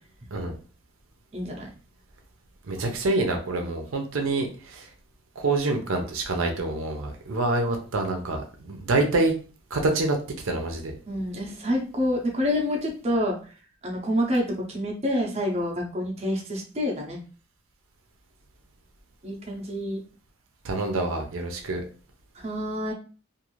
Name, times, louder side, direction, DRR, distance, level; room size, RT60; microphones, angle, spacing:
voice 1, 1.3-1.7 11.1-13.4 13.8-17.2 19.2-20.0 22.3-22.9, left 1 dB, 30° right, -1 dB, 0.6 m, -27 dB
voice 2, 2.7-4.8 5.4-9.3 9.7-10.2 10.4-10.9 20.6-21.8, right 2 dB, 80° right, 3 dB, 0.6 m, -26 dB
2.5 x 2.5 x 3.0 m, 0.37 s
head